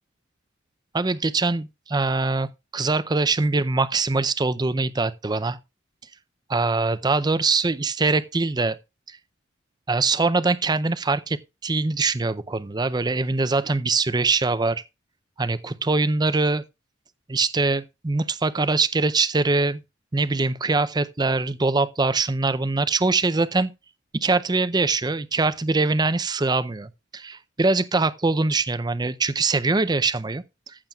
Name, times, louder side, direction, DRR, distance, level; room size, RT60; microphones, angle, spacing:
voice 1, 0.9-2.5 2.7-5.6 6.5-8.8 9.1-9.2 9.9-14.8 15.4-16.6 17.3-19.8 20.1-23.7 24.2-30.4, right 3 dB, 20° right, 0.5 m, -23 dB
14.5 x 7.4 x 2.4 m
head